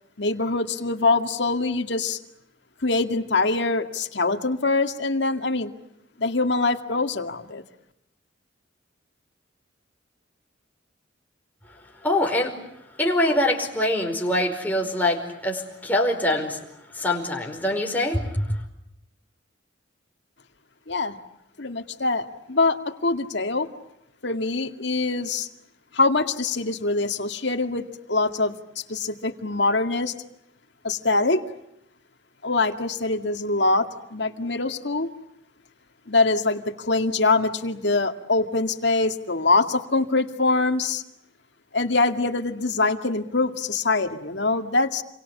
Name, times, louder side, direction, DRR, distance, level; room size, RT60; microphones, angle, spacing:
voice 1, 0.2-2.2 2.8-5.7 6.2-7.6 20.9-21.2 21.6-23.7 24.2-25.5 25.9-28.5 28.9-30.1 30.8-31.4 32.4-35.1 36.1-41.0 41.7-45.0, left 3 dB, 65° left, 6 dB, 2.1 m, -24 dB
voice 2, 12.0-12.5 13.0-16.6 16.9-18.6, left 1 dB, 10° left, 1 dB, 5.0 m, -24 dB
29.5 x 24.0 x 8.5 m, 0.80 s
head